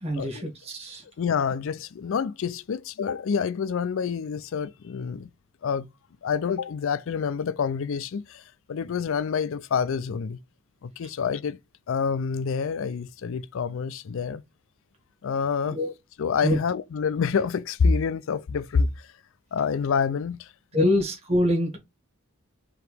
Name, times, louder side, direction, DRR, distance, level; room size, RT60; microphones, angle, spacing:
voice 1, 0.0-1.0 15.7-15.9 16.4-16.6 20.7-21.8, left 1 dB, 30° right, 1.9 m, -25 dB
voice 2, 1.2-5.3 5.6-5.9 6.2-10.4 10.8-11.6 11.9-14.4 15.2-15.8 16.2-19.1 19.5-20.9, left 6 dB, 65° left, 0.4 m, -27 dB
4.8 x 3.0 x 3.4 m
head